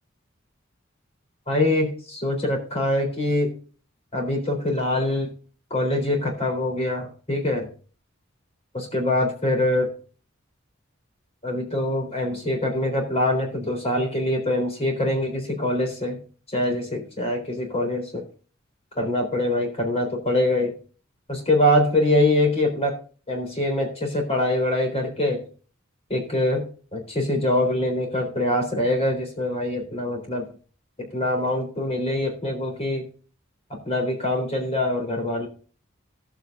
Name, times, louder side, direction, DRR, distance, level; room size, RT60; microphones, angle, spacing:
voice 1, 1.5-3.5 4.1-5.3 5.7-7.7 8.7-9.9 11.4-16.2 16.5-18.2 19.0-20.7 21.3-23.0 23.3-25.4 26.1-26.6 26.9-30.5 31.0-33.1 33.7-35.5, left 1 dB, 30° left, 2 dB, 3.9 m, -24 dB
17.5 x 8.0 x 2.6 m, 0.39 s
head